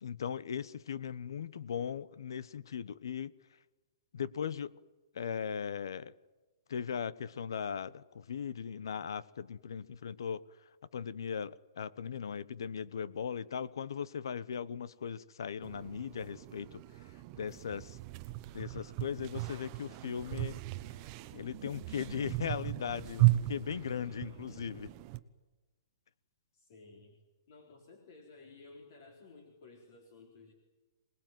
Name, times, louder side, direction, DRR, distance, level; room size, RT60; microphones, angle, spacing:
voice 1, 0.0-3.3 4.1-4.7 5.1-6.1 6.7-10.4 10.9-16.8 17.4-18.0 18.5-20.6 21.3-24.9, left 7 dB, 75° left, 1.1 m, -38 dB
sound 1, 15.6-25.2, right 19 dB, 25° right, 0.9 m, -35 dB
voice 2, 23.8-25.0 26.5-27.2 27.5-30.5, left 3 dB, 45° left, 4.1 m, -56 dB
25.5 x 20.0 x 9.4 m
hypercardioid pair, 170°, 2 cm